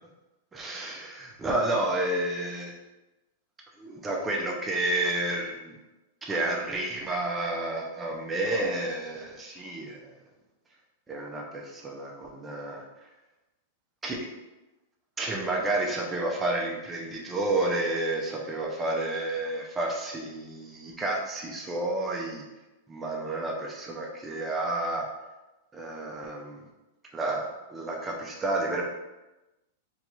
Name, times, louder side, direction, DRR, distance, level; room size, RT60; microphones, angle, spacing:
voice 1, 0.5-2.7 3.8-5.7 6.2-10.1 11.1-12.8 14.0-14.2 15.2-22.4 22.9-25.1 25.7-26.6 27.1-28.8, right 2 dB, 10° right, -1 dB, 0.4 m, -30 dB
3.9 x 2.3 x 2.9 m, 1.1 s
supercardioid pair, 170°, 0 cm